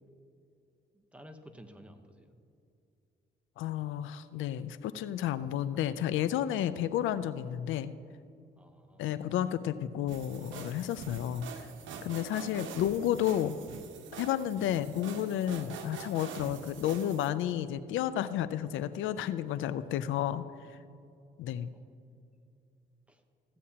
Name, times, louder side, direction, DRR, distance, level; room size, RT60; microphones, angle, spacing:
voice 1, 0.9-2.3 8.6-9.2 19.8-20.2 21.7-22.0 23.1-23.2, equal, 5° right, 4 dB, 0.9 m, -54 dB
voice 2, 3.6-7.9 9.0-11.7 12.0-13.5 14.2-20.8 21.4-21.7, left 11 dB, 80° left, 14 dB, 0.4 m, -32 dB
sound 1, 10.1-17.3, right 6 dB, 75° right, 0.9 m, -45 dB
15.0 x 8.4 x 2.8 m, 2.5 s
cardioid pair, 90°, 20 cm